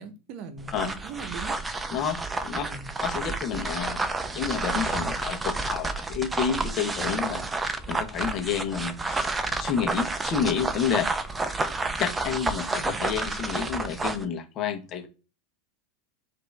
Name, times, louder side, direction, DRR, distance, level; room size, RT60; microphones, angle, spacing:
voice 1, 0.0-1.6 2.5-3.0 12.8-13.1, right 5 dB, 50° right, 1.0 m, -40 dB
sound 1, 0.6-14.3, right 3 dB, 15° right, 0.7 m, -30 dB
voice 2, 1.9-2.6 3.0-11.1 12.0-15.1, left 7 dB, 40° left, 1.3 m, -30 dB
5.0 x 2.8 x 3.4 m
supercardioid pair, 120°, 0 cm